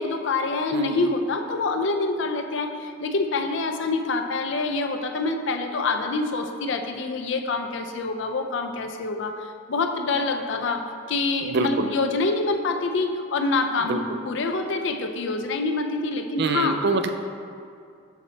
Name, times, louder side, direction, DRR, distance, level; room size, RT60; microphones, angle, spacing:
voice 1, 0.0-16.8, left 3 dB, 65° left, 5 dB, 0.5 m, -26 dB
voice 2, 0.7-1.1 11.4-11.9 13.8-14.0 16.4-17.1, right 3 dB, 60° right, 7 dB, 0.4 m, -25 dB
7.2 x 4.0 x 4.1 m, 2.3 s
head